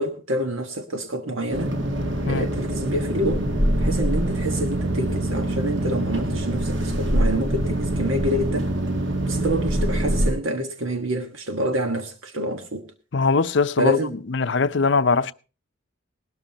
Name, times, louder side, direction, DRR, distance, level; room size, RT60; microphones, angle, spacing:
voice 1, 0.0-1.8 2.2-3.5 3.8-8.7 9.3-12.8 13.8-14.1, equal, 80° right, 1.4 m, -27 dB
sound 1, 1.5-10.3, right 1 dB, 60° right, 2.3 m, -24 dB
voice 2, 13.1-14.0 14.3-15.3, left 4 dB, 60° left, 0.6 m, -21 dB
19.0 x 13.0 x 2.8 m
head